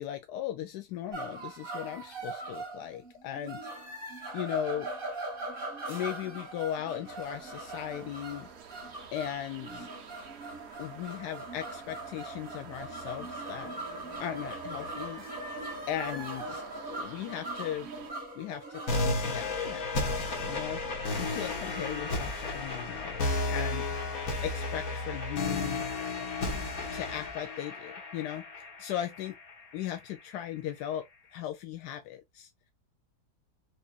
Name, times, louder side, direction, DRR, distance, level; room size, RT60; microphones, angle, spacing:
voice 1, 0.0-3.7 4.3-4.9 5.9-8.5 9.1-9.9 10.8-15.2 15.9-17.9 18.3-18.8 19.2-24.0 24.4-25.9 26.9-29.4 29.7-32.7, left 11 dB, 85° left, 1.1 m, -38 dB
sound 1, 1.1-19.1, right 2 dB, 35° right, 1.7 m, -41 dB
sound 2, 7.1-18.1, right 7 dB, 75° right, 1.5 m, -49 dB
sound 3, 18.9-29.9, left 2 dB, 60° left, 1.7 m, -33 dB
5.0 x 2.5 x 2.3 m
omnidirectional pair, 1.7 m